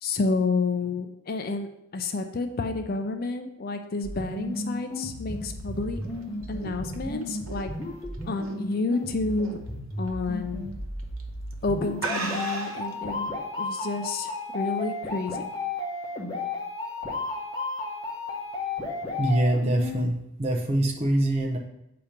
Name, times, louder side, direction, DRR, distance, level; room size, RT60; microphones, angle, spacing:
voice 1, 0.0-6.0 6.5-7.7 8.2-9.6 10.0-10.7 11.6-13.3 13.6-15.5, left 3 dB, 45° left, 6 dB, 0.5 m, -30 dB
sound 1, 4.0-20.0, left 2 dB, 20° left, 1.1 m, -33 dB
sound 2, 5.8-9.0 9.4-9.7 10.1-10.2 11.0-11.2 11.5-11.6 12.0-12.9, right 3 dB, 85° right, 1.0 m, -35 dB
voice 2, 19.2-21.6, right 1 dB, 30° right, 0 dB, 0.7 m, -24 dB
8.4 x 2.9 x 5.0 m, 0.86 s
head